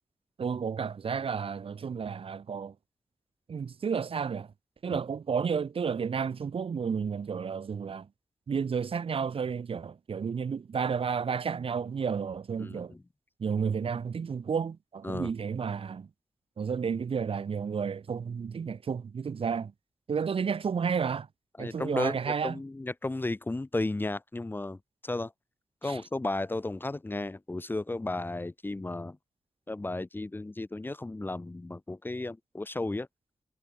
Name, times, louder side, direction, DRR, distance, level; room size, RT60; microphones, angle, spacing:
voice 1, 0.4-2.7 3.5-4.5 4.8-8.1 8.5-12.9 13.4-16.1 16.6-19.7 20.1-21.3 21.6-22.6 25.8-26.0, right 6 dB, 70° right, 3.4 m, -31 dB
voice 2, 12.6-13.0 15.0-15.3 21.6-25.3 25.8-29.2 29.7-33.1, left 2 dB, 20° left, 1.5 m, -34 dB
wide cardioid pair, 115°, 10 cm